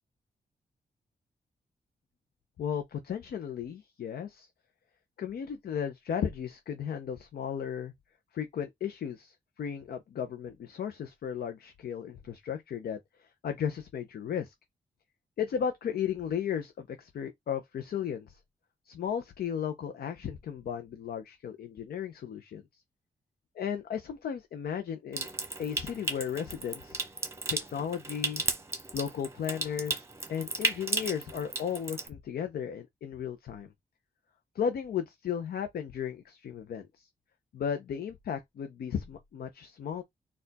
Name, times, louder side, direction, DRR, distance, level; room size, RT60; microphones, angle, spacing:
voice 1, 2.6-4.5 5.2-7.9 8.3-14.5 15.4-18.4 18.9-22.6 23.6-25.3 25.6-27.0 27.5-28.4 28.9-30.0 30.3-33.7 34.5-37.1 37.5-40.0, left 8 dB, 80° left, 0.6 m, -35 dB
Water tap faucet / Sink (filling or washing) / Trickle dribble, 25.1-32.1, right 3 dB, 15° right, 1.0 m, -35 dB
4.3 x 2.4 x 4.0 m
wide cardioid pair, 115°, 16 cm